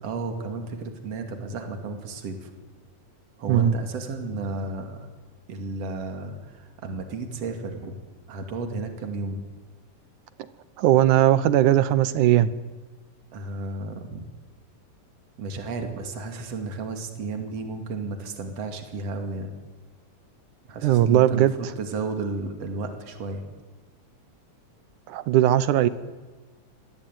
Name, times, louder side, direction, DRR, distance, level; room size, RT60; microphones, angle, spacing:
voice 1, 0.0-2.5 3.4-5.1 5.5-8.0 8.3-9.5 13.3-14.3 15.4-19.5 20.7-23.4, right 3 dB, 55° right, 5 dB, 3.5 m, -33 dB
voice 2, 10.8-12.5 20.8-21.5 25.1-25.9, right 12 dB, 85° right, 15 dB, 2.5 m, -19 dB
24.0 x 20.0 x 9.3 m, 1.3 s
omnidirectional pair, 3.4 m